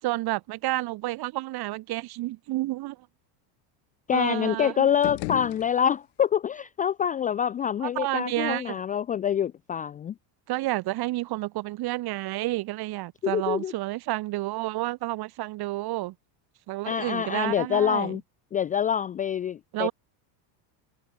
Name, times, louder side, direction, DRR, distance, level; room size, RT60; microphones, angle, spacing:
voice 1, 0.0-3.1 4.1-4.9 7.8-8.8 10.5-16.1 16.7-18.2 19.7-19.9, right 18 dB, 45° right, 6.2 m, -30 dB
voice 2, 4.1-10.1 13.2-13.7 16.9-18.2 18.5-19.9, left 8 dB, 15° left, 0.4 m, -26 dB
sound 1, 4.9-6.3, left 29 dB, 75° left, 5.9 m, -36 dB
cardioid pair, 160°, 50 cm